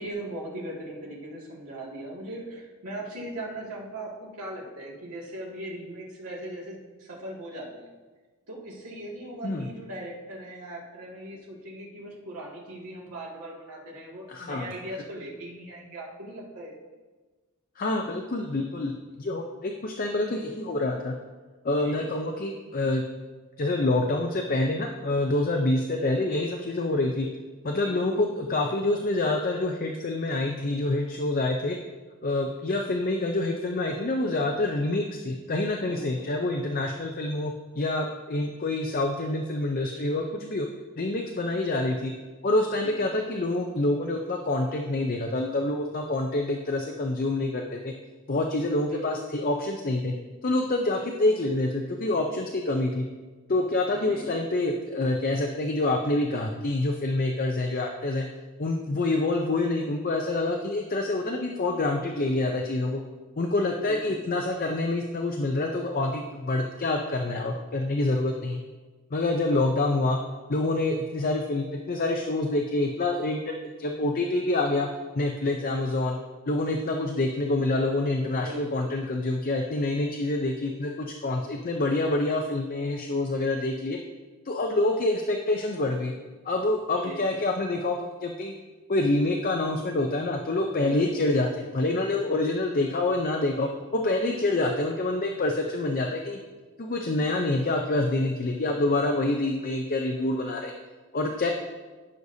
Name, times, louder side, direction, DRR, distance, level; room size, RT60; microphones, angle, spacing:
voice 1, 0.0-7.9 8.5-16.7 21.7-22.0 27.7-28.2 35.8-36.3 42.8-43.0 48.8-49.1 53.9-54.3 63.8-64.2 69.3-69.7 78.4-78.9 86.9-87.2, right 1 dB, 85° right, -4 dB, 2.2 m, -39 dB
voice 2, 14.3-14.7 17.8-21.1 21.6-23.0 23.6-27.3 27.6-31.8 32.2-40.7 41.0-42.1 42.4-47.9 48.3-50.1 50.4-53.0 53.5-58.3 58.6-63.0 63.4-68.6 69.1-70.2 70.5-74.9 75.2-76.2 76.5-84.0 84.5-86.1 86.4-88.5 88.9-96.4 96.8-100.7 101.1-101.5, left 2 dB, 40° left, 2 dB, 0.6 m, -27 dB
14.5 x 6.4 x 2.7 m, 1.3 s
head